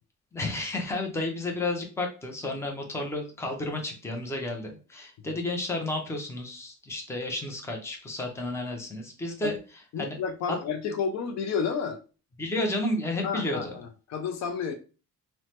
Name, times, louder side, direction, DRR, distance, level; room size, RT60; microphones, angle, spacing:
voice 1, 0.3-9.5 10.0-10.2 10.5-10.6 12.4-13.7, left 2 dB, 10° left, 2 dB, 0.5 m, -32 dB
voice 2, 9.9-12.0 13.2-14.7, left 6 dB, 55° left, 7 dB, 0.4 m, -31 dB
3.0 x 2.1 x 2.8 m, 0.34 s
cardioid pair, 145°, 31 cm